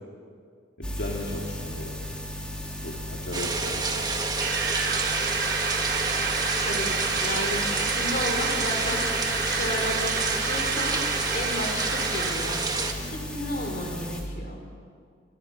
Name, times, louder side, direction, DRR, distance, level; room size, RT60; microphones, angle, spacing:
voice 1, 0.8-2.2 2.8-4.0, left 1 dB, 70° left, -2 dB, 3.0 m, -36 dB
sound 1, 0.8-14.2, left 1 dB, 5° left, 3.5 m, -36 dB
sound 2, 3.3-12.9, right 3 dB, 20° right, 2.0 m, -29 dB
sound 3, 4.4-12.7, right 5 dB, 65° right, 3.8 m, -30 dB
voice 2, 7.2-9.0 9.4-11.0 11.3-12.6 13.0-14.6, left 1 dB, 50° left, 2 dB, 5.3 m, -33 dB
29.0 x 26.0 x 6.1 m, 2.1 s
head